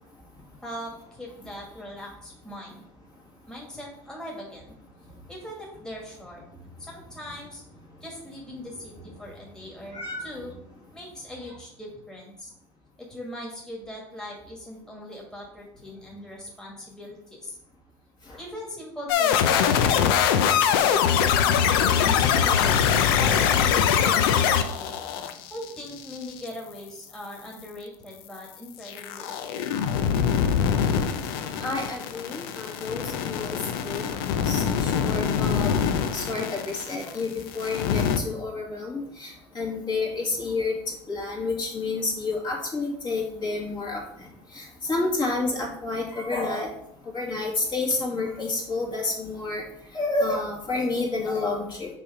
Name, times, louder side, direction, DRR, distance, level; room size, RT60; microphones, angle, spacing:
voice 1, 0.6-2.9 3.5-4.7 5.3-6.4 6.8-7.6 8.0-10.5 10.9-12.5 13.0-17.6 18.4-22.7 23.2-25.0 25.5-29.3 29.7-29.8, left 1 dB, 5° left, -3 dB, 1.8 m, -40 dB
voice 2, 9.9-10.3 31.6-33.6 33.8-35.7 36.1-40.7 41.1-44.0 44.5-46.7 47.1-49.6 49.9-51.9, left 3 dB, 40° left, -2 dB, 2.3 m, -29 dB
sound 1, 19.1-26.4 28.9-37.2 37.5-38.2, left 8 dB, 80° left, 0.6 m, -23 dB
5.4 x 4.3 x 4.9 m, 0.75 s
supercardioid pair, 95°, 12 cm